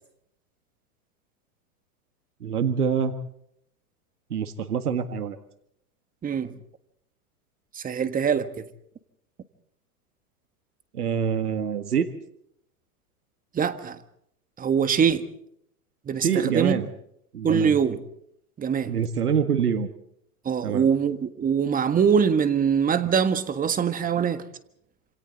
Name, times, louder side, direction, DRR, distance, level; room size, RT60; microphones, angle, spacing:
voice 1, 2.4-3.1 4.3-5.4 10.9-12.1 16.2-16.9 17.3-17.8 18.9-19.9 20.6-20.9, right 7 dB, 90° right, 1.9 m, -25 dB
voice 2, 6.2-6.6 7.7-8.6 13.5-14.0 14.6-15.3 16.1-16.8 17.4-18.0 18.6-19.0 20.4-24.4, right 7 dB, 20° right, 1.5 m, -23 dB
27.5 x 27.0 x 4.1 m
hypercardioid pair, 115°, 44 cm